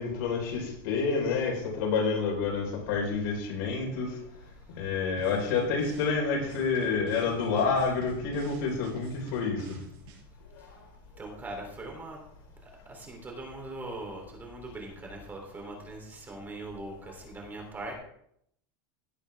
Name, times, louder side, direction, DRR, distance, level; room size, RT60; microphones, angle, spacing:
voice 1, 0.0-4.2 4.8-9.8, left 5 dB, 70° left, 4.4 m, -28 dB
sound 1, 5.2-6.1 6.4-10.2, right 5 dB, 45° right, 5.8 m, -48 dB
voice 2, 11.2-12.2 12.6-18.0, right 2 dB, 15° right, 3.2 m, -41 dB
17.0 x 8.2 x 3.5 m
supercardioid pair, 150°, 12 cm